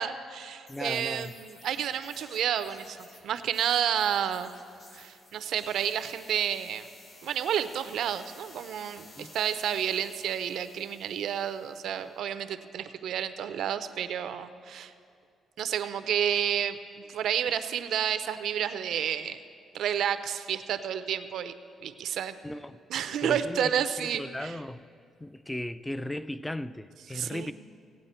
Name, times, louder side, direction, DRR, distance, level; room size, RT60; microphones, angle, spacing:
voice 1, 0.0-3.0 3.2-4.5 4.9-6.9 7.2-14.9 15.6-16.8 17.1-19.4 19.7-21.5 21.8-22.4 22.9-24.6 27.1-27.5, right 9 dB, 75° right, 0.5 m, -30 dB
sound 1, 0.7-12.1, left 2 dB, 65° left, 2.3 m, -53 dB
voice 2, 0.7-1.3 9.2-9.4 22.4-22.8 23.2-23.7 24.0-24.9 25.2-27.5, left 1 dB, 10° left, 0.3 m, -36 dB
17.0 x 8.7 x 4.3 m
cardioid pair, 90°, 0 cm